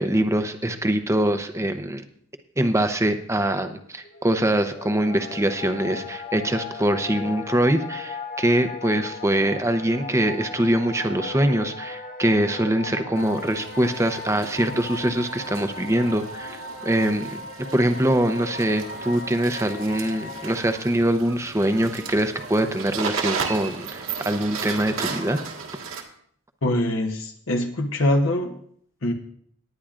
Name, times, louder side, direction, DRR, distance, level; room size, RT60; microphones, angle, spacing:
voice 1, 0.0-2.0 2.6-25.4, right 1 dB, 15° right, 8 dB, 0.7 m, -23 dB
sound 1, 4.0-20.5, left 3 dB, 35° left, 0.8 m, -37 dB
sound 2, 13.2-26.0, right 5 dB, 65° right, 1.7 m, -35 dB
voice 2, 26.6-28.6 29.0-29.1, left 1 dB, 60° left, 3 dB, 1.0 m, -23 dB
19.0 x 10.0 x 2.5 m, 0.64 s
head